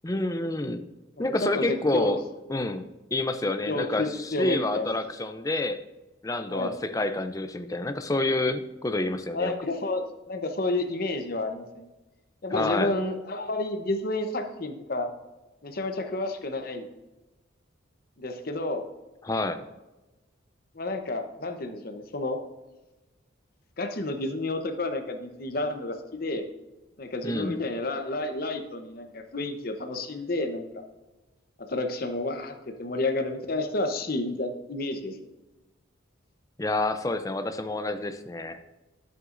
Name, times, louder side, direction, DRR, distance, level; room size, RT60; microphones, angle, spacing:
voice 1, 0.0-0.8 1.2-2.2 2.5-2.9 3.1-5.8 6.2-9.5 12.5-12.9 19.2-19.6 27.2-27.6 36.6-38.6, left 2 dB, 15° left, 9 dB, 0.4 m, -28 dB
voice 2, 1.2-2.1 3.7-5.0 6.5-6.8 9.3-11.9 12.4-15.1 15.6-16.9 18.2-18.9 20.7-22.4 23.8-26.4 27.0-30.8 31.6-35.2, left 2 dB, 45° left, 6 dB, 0.8 m, -30 dB
11.0 x 7.8 x 2.6 m, 1.1 s
head